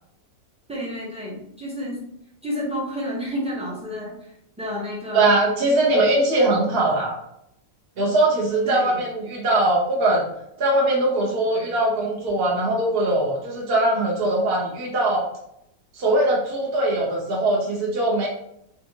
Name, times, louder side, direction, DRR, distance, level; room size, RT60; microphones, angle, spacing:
voice 1, 0.7-2.1 2.4-4.3 4.6-5.3 8.6-9.0, equal, 5° right, -5 dB, 0.5 m, -30 dB
voice 2, 5.1-7.2 8.0-10.2 10.6-15.2 16.0-18.3, right 2 dB, 50° right, -4 dB, 0.8 m, -21 dB
3.5 x 2.5 x 2.8 m, 0.76 s
omnidirectional pair, 1.6 m